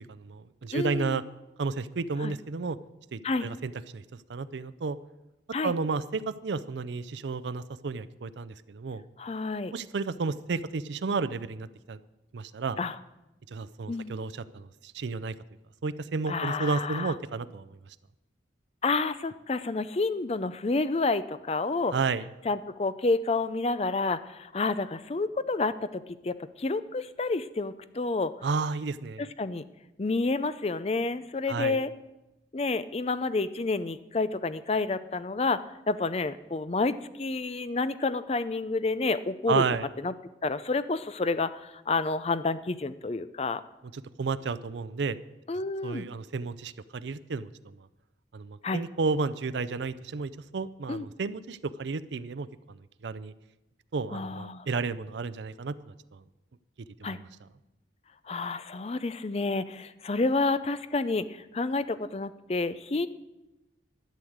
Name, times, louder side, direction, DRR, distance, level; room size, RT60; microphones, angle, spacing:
voice 1, 0.1-1.2 1.6-2.8 3.1-4.0 4.3-5.0 5.6-9.0 9.7-12.0 12.3-12.8 13.5-15.3 15.8-17.7 21.9-22.2 28.4-29.3 31.5-31.8 39.5-39.9 43.9-45.2 45.8-47.5 48.3-52.8 53.0-53.3 53.9-55.9 57.0-57.2, right 4 dB, 75° right, 14 dB, 0.5 m, -32 dB
voice 2, 0.7-1.2 2.2-2.3 3.2-3.5 5.5-5.7 9.2-9.7 12.8-13.0 13.9-14.1 16.3-17.1 18.8-21.9 22.4-28.3 29.2-29.6 30.0-31.9 32.5-35.6 35.9-39.6 40.0-40.1 40.4-43.6 45.5-46.1 48.6-48.8 50.9-51.1 54.1-54.7 57.0-57.2 58.3-63.1, left 3 dB, 35° left, 14 dB, 0.5 m, -29 dB
12.0 x 6.4 x 9.3 m, 0.98 s
head